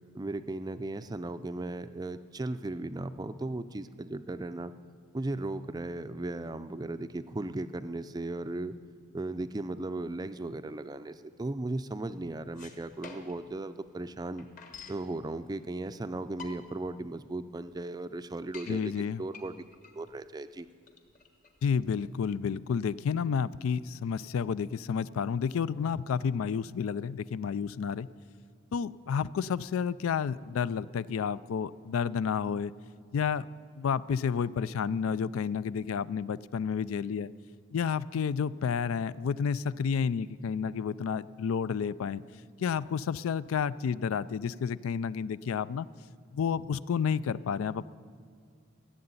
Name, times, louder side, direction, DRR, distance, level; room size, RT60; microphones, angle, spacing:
voice 1, 0.1-4.7 5.1-8.8 9.1-14.5 14.9-19.5 19.9-20.7, right 2 dB, 20° right, 12 dB, 0.4 m, -36 dB
sound 1, 12.6-13.5 13.9-14.0 14.1-15.1 15.8-15.9 16.2-16.9 17.4-17.5 17.7-17.8 18.2-18.8 19.3-22.2, left 5 dB, 40° left, 1.3 m, -48 dB
voice 2, 18.7-19.2 21.6-28.1 28.7-32.7 33.1-33.5 33.8-37.3 37.7-42.2 42.6-45.9 46.3-47.8, left 6 dB, 80° left, 18 dB, 0.4 m, -30 dB
15.0 x 7.7 x 9.6 m, 2.3 s
head